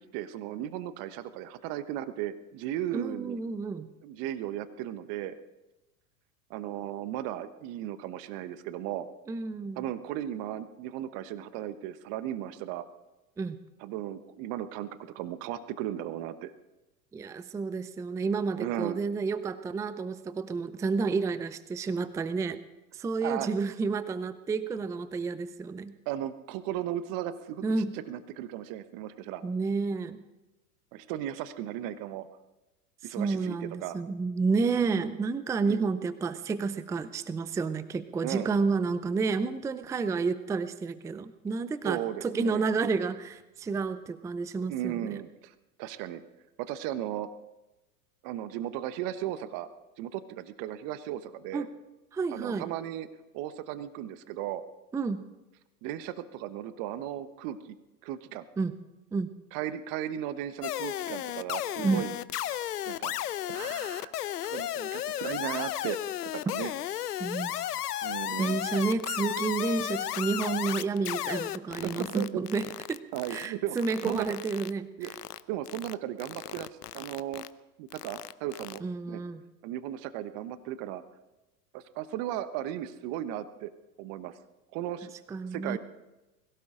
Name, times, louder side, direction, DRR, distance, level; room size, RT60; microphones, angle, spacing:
voice 1, 0.1-3.4 4.0-5.4 6.5-9.1 9.8-12.8 13.8-16.5 18.6-19.0 23.2-23.5 26.1-27.6 28.1-29.4 30.9-32.3 33.0-34.0 34.7-35.1 35.7-35.9 38.2-38.5 41.8-42.7 44.7-46.2 46.6-47.3 48.2-49.7 50.0-51.7 52.3-53.1 53.3-54.6 55.8-57.8 58.0-58.4 59.5-62.1 62.5-63.2 63.5-64.1 64.4-66.0 66.3-66.7 68.0-68.6 71.8-72.3 73.1-73.8 74.0-74.3 75.0-75.1 75.5-76.7 76.9-77.4 77.8-79.2 79.6-81.0 81.7-83.7 84.0-84.4 84.7-85.1 85.5-85.8, right 12 dB, 45° right, 13 dB, 1.0 m, -36 dB
voice 2, 2.9-3.9 9.3-9.8 13.4-13.6 17.1-22.6 22.9-26.0 27.6-28.0 29.4-30.2 33.0-45.2 51.5-51.7 52.1-52.7 54.9-55.2 58.6-58.8 59.1-59.3 61.8-62.0 67.2-67.6 68.4-73.0 73.3-74.9 78.8-79.4 85.3-85.8, right 4 dB, 5° right, 14 dB, 0.5 m, -30 dB
sound 1, 60.6-73.5 73.8-74.7 75.0-75.4 75.7-75.9 76.2-77.5 77.9-78.8, left 12 dB, 80° left, 0.7 m, -34 dB
22.0 x 16.5 x 3.8 m, 1.0 s
hypercardioid pair, 95°, 46 cm